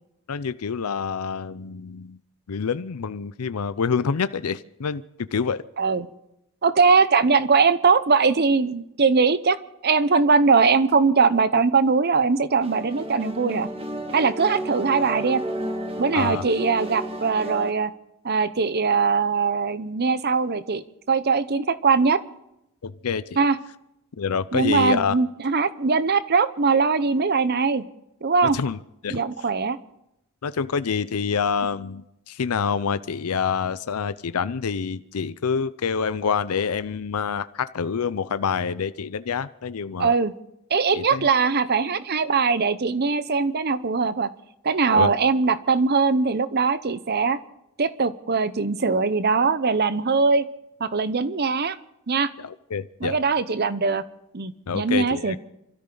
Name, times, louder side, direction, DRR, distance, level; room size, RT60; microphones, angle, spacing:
voice 1, 0.3-2.2 2.5-5.0 5.3-5.6 16.1-16.4 22.8-23.5 24.2-25.2 28.5-29.2 30.4-40.1 40.9-41.3 44.9-45.1 52.4-53.2 54.7-55.4, left 6 dB, 85° left, 14 dB, 0.5 m, -27 dB
voice 2, 6.6-9.6 9.8-13.7 14.1-15.4 16.0-17.9 18.2-20.8 21.1-22.2 23.4-23.6 24.5-27.8 28.2-28.6 29.1-29.8 40.0-40.3 40.7-44.3 44.6-47.4 47.8-50.4 50.8-51.8 52.1-52.3 53.0-54.0 54.3-55.4, right 4 dB, 45° right, 14 dB, 0.8 m, -21 dB
sound 1, 12.6-17.7, right 1 dB, 25° right, 1.6 m, -32 dB
28.0 x 13.0 x 3.9 m, 0.85 s
head